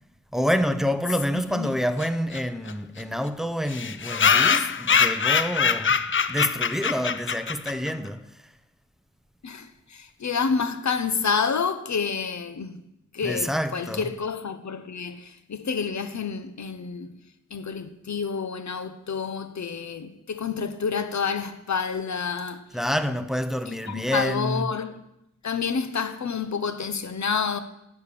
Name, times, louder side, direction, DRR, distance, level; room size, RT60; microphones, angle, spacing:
voice 1, 0.3-8.5 13.2-14.1 22.7-24.7, equal, ahead, 0.7 m, -28 dB
voice 2, 1.3-1.7 9.4-12.8 13.1-17.2 17.5-22.6 23.7-25.0 25.4-27.6, left 5 dB, 65° left, 1.0 m, -29 dB
sound 1, 2.0-2.1 2.3-2.4 2.7-2.8 3.0-3.1 3.7-7.9, left 6 dB, 40° left, 0.5 m, -23 dB
11.0 x 6.9 x 8.4 m
wide cardioid pair, 125°, 31 cm